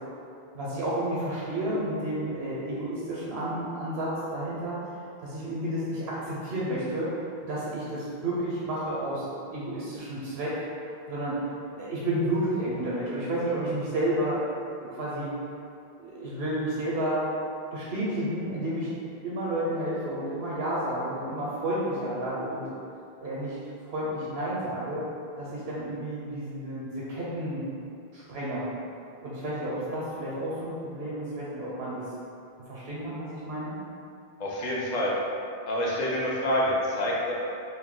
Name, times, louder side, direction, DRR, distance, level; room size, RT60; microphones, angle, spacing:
voice 1, 0.5-4.8 5.2-7.1 7.4-9.2 9.5-10.5 10.8-11.4 11.7-14.4 14.8-15.3 16.0-17.3 17.7-18.9 19.2-22.6 23.2-23.6 23.8-25.0 25.4-27.6 28.1-28.7 29.2-32.1 32.7-33.8, right 1 dB, 80° right, -7 dB, 0.9 m, -31 dB
voice 2, 34.4-35.1 35.7-37.3, left 1 dB, 50° left, -5 dB, 0.6 m, -27 dB
2.6 x 2.2 x 3.6 m, 2.6 s
omnidirectional pair, 1.0 m